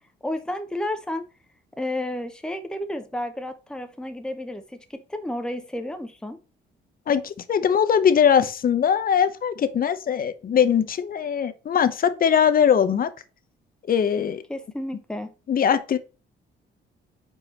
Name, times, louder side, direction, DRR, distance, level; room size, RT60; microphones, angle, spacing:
voice 1, 0.2-1.3 1.8-6.4 14.5-15.3, left 1 dB, 5° left, 0.9 m, -31 dB
voice 2, 7.1-13.1 13.9-14.4 15.5-16.0, left 8 dB, 45° left, 0.8 m, -21 dB
4.8 x 4.6 x 4.3 m
cardioid pair, 90°, 20 cm